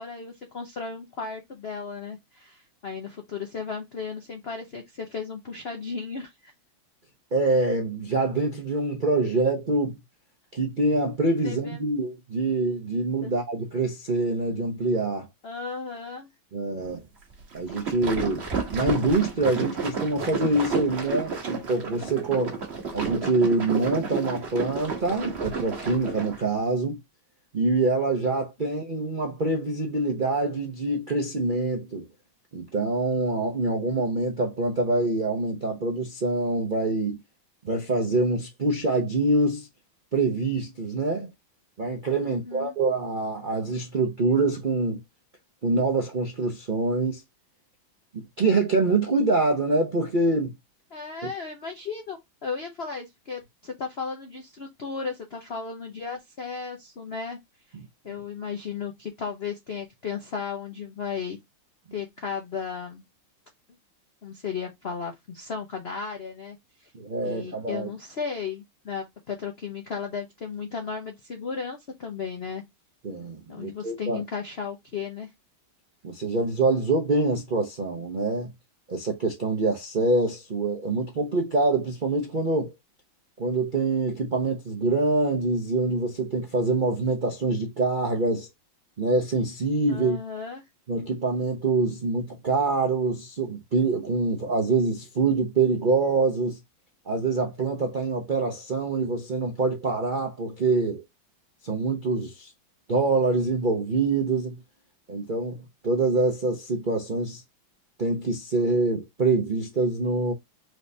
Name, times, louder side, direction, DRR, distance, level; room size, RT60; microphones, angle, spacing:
voice 1, 0.0-6.5 11.4-11.9 13.2-13.3 15.4-16.3 28.6-28.7 42.2-42.7 50.9-57.4 58.0-61.4 61.9-63.0 64.2-66.9 67.2-72.6 73.5-75.3 89.9-90.6, left 5 dB, 70° left, 0.5 m, -35 dB
voice 2, 7.3-10.0 10.5-15.3 16.5-17.0 17.5-18.5 18.7-22.6 22.9-27.0 27.5-32.1 32.5-37.2 37.6-39.7 40.1-41.3 41.8-45.0 45.6-47.2 48.1-50.5 66.9-67.9 73.0-74.2 76.0-78.5 78.9-82.7 83.4-88.5 89.0-90.2 90.9-96.6 97.1-101.0 101.6-102.5 102.9-104.6 105.1-107.4 108.0-110.3, right 3 dB, 70° right, 0.4 m, -25 dB
sound 1, 17.5-26.4, right 5 dB, 40° right, 1.1 m, -31 dB
4.8 x 3.3 x 2.7 m
omnidirectional pair, 2.2 m